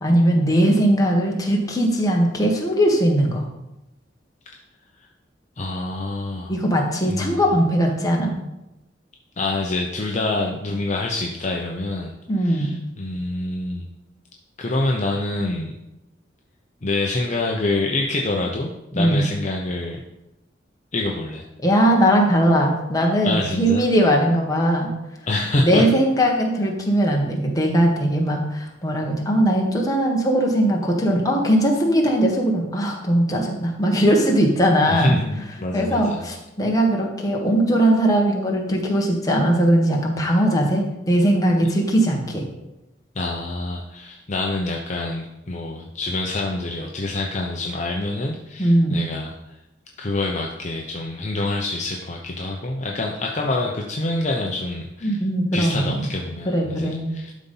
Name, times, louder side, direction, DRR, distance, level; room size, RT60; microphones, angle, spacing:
voice 1, 0.0-3.4 6.5-8.3 12.3-12.7 18.9-19.2 21.6-24.9 25.6-35.2 35.7-42.4 48.6-49.0 55.0-56.1 56.4-57.1, right 1 dB, 20° left, 0 dB, 1.5 m, -19 dB
voice 2, 5.6-6.5 7.1-7.4 9.4-12.1 12.4-13.8 14.6-15.8 16.8-20.0 20.9-21.5 23.2-23.8 25.3-25.8 34.9-36.2 43.1-49.4 50.0-55.2 55.5-57.3, left 2 dB, 40° left, 0 dB, 0.8 m, -26 dB
12.0 x 4.2 x 5.5 m, 0.93 s
head